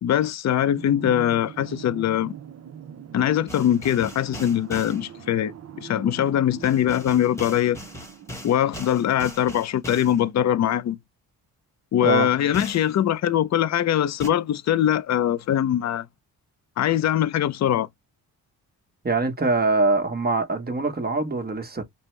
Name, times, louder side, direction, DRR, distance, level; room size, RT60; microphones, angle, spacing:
voice 1, 0.0-2.3 3.1-7.8 8.4-11.0 11.9-16.1 16.8-17.9, left 10 dB, 50° left, 0.5 m, -22 dB
sound 1, 0.8-8.6, right 8 dB, 45° right, 0.6 m, -42 dB
sound 2, 3.5-5.0 6.6-10.2 12.5-12.9 14.2-14.3, left 1 dB, 10° left, 1.3 m, -39 dB
voice 2, 19.0-21.8, right 3 dB, 25° right, 1.2 m, -23 dB
5.2 x 2.1 x 3.2 m
cardioid pair, 80°, 37 cm